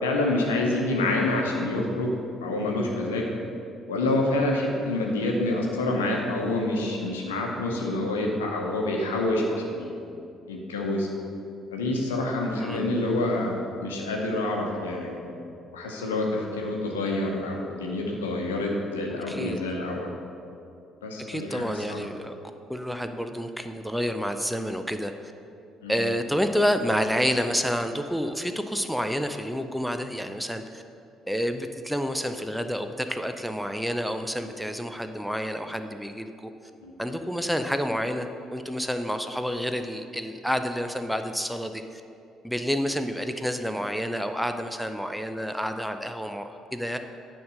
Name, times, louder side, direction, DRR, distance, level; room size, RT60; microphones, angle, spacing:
voice 1, 0.0-2.1 2.4-3.3 3.9-9.9 10.5-11.1 11.7-15.3 15.7-20.1 21.0-22.0 25.8-26.0 36.8-36.9, left 2 dB, 80° left, 0 dB, 0.9 m, -27 dB
voice 2, 19.1-19.6 21.3-22.4 22.7-25.1 25.9-30.8 31.3-36.5 37.0-42.0 42.4-47.0, equal, ahead, 7 dB, 0.5 m, -29 dB
9.4 x 3.7 x 6.4 m, 2.6 s
figure-of-eight pair, 50°, 0 cm